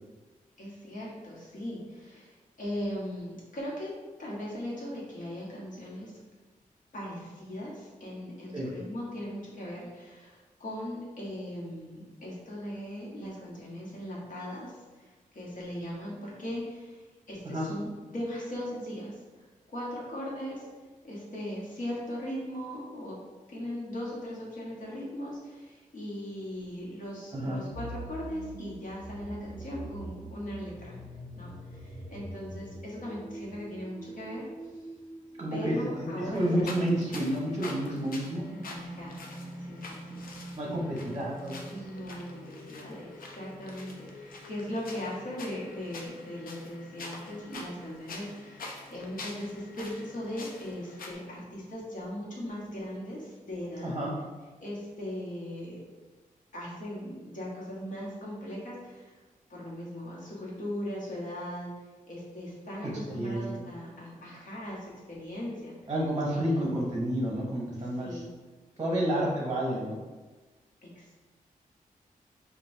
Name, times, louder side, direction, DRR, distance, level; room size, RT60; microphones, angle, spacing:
voice 1, 0.6-3.9 4.2-6.1 6.9-20.7 21.0-23.2 23.5-31.0 31.3-34.5 35.5-36.8 38.6-39.2 39.6-40.3 41.7-53.9 54.6-55.8 56.5-59.2 59.5-61.7 62.1-65.7 66.5-66.8 67.8-68.3 69.0-69.1 70.8-71.1, equal, 65° left, -5 dB, 1.2 m, -39 dB
sound 1, 27.7-46.1, equal, ahead, 1.3 m, -46 dB
voice 2, 35.4-38.5 40.5-41.8 53.8-54.1 63.1-63.7 65.9-68.2 68.8-70.0, right 1 dB, 30° right, -4 dB, 0.7 m, -30 dB
sound 2, 36.3-51.1, left 2 dB, 85° left, 0.6 m, -46 dB
5.2 x 2.3 x 2.6 m, 1.3 s
wide cardioid pair, 120°, 14 cm